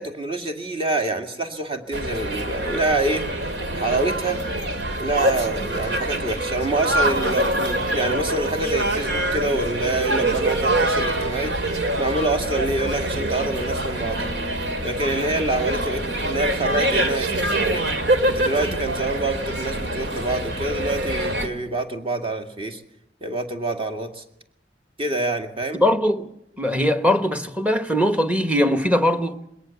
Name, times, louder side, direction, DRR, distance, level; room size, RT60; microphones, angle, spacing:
voice 1, 0.0-3.3 3.7-4.4 5.0-14.3 14.8-17.8 18.3-22.8 23.2-24.2 25.0-25.8, right 2 dB, 30° right, 2.1 m, -26 dB
sound 1, 1.9-21.5, right 1 dB, 80° right, 2.4 m, -25 dB
voice 2, 25.7-26.3 26.6-29.4, equal, 10° right, 1.2 m, -20 dB
21.5 x 18.0 x 7.1 m
head